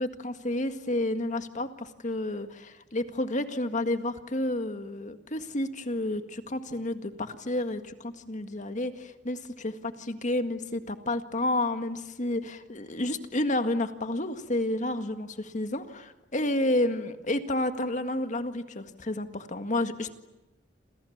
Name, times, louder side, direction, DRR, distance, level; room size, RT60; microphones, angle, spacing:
voice 1, 0.0-1.7 2.0-20.1, left 1 dB, 45° left, 8 dB, 1.9 m, -30 dB
28.5 x 28.0 x 7.4 m, 1.0 s
head